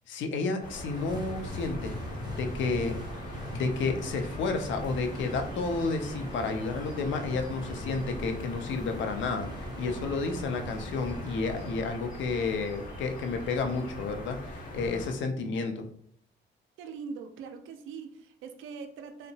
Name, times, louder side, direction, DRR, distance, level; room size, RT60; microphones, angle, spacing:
voice 1, 0.1-2.0 2.3-3.0 3.3-15.9, left 4 dB, 70° left, 6 dB, 0.5 m, -31 dB
sound 1, 0.6-15.1, left 1 dB, 45° left, 1.0 m, -42 dB
sound 2, 0.9-11.8, equal, 20° right, 0.5 m, -41 dB
voice 2, 16.8-19.3, right 5 dB, 85° right, 6 dB, 0.4 m, -42 dB
2.8 x 2.1 x 2.7 m, 0.63 s
cardioid pair, 90°, 20 cm